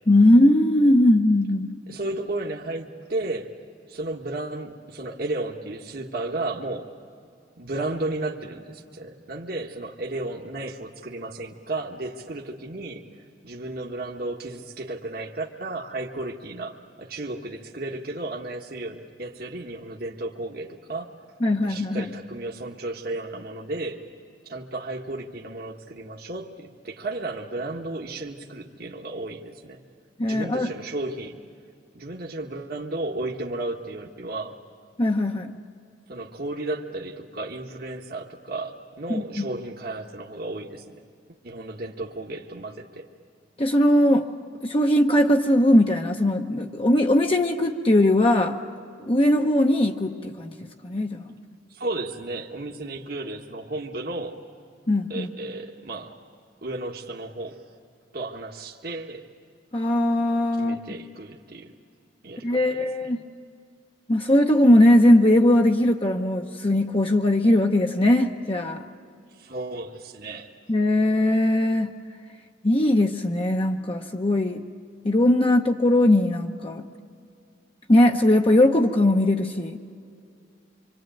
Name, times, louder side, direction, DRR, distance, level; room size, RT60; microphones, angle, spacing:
voice 1, 0.1-1.7 21.4-22.1 30.2-30.7 35.0-35.5 39.1-39.5 43.6-44.3 44.6-48.6 49.1-50.5 50.8-51.2 54.9-55.3 59.7-60.8 62.4-63.2 64.1-68.8 70.7-71.9 72.6-74.6 75.0-76.8 77.9-79.8, left 1 dB, 30° left, 2 dB, 0.8 m, -20 dB
voice 2, 1.9-3.5 3.9-6.9 7.6-13.0 13.4-21.2 21.6-24.0 24.4-29.8 30.2-31.4 31.9-34.6 36.1-41.0 41.4-43.1 51.7-54.4 55.1-56.2 56.6-57.6 58.1-59.3 60.6-61.7 62.2-63.1 69.4-70.5, right 2 dB, 55° right, 1 dB, 1.4 m, -33 dB
25.5 x 25.5 x 9.2 m, 2.4 s
head